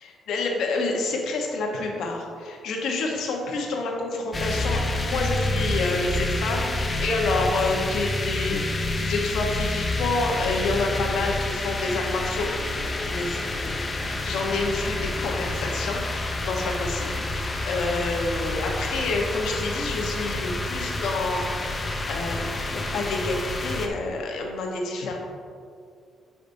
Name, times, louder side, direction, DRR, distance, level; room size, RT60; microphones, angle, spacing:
voice 1, 0.0-12.5 13.0-13.7 14.0-25.2, left 3 dB, 75° left, 0 dB, 1.0 m, -28 dB
sound 1, 4.3-23.9, left 2 dB, 25° left, 0.6 m, -28 dB
8.2 x 4.9 x 2.7 m, 2.3 s
cardioid pair, 90°, 0 cm